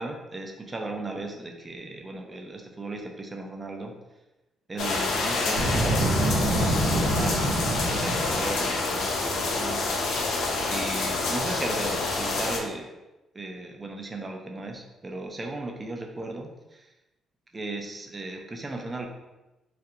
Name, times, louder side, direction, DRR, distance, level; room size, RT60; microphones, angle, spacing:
voice 1, 0.0-3.9 4.7-10.0 10.7-12.9 13.3-16.9 17.5-19.1, right 2 dB, 25° right, 2 dB, 0.4 m, -36 dB
sound 1, 4.8-12.6, left 3 dB, 75° left, 0.4 m, -27 dB
Boom, 5.5-8.6, right 1 dB, 85° right, 0.6 m, -26 dB
2.4 x 2.1 x 2.8 m, 1.0 s
cardioid pair, 90°, 0 cm